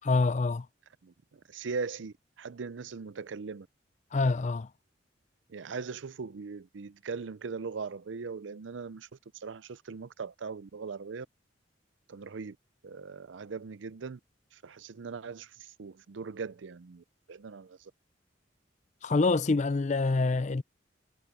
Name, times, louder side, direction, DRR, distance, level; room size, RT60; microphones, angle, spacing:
voice 1, 0.0-0.7 4.1-4.7 19.0-20.6, left 3 dB, 40° left, 0.5 m, -26 dB
voice 2, 1.0-3.7 5.5-11.3 12.1-12.6 12.8-14.2 14.5-17.9, right 5 dB, 75° right, 0.5 m, -40 dB
head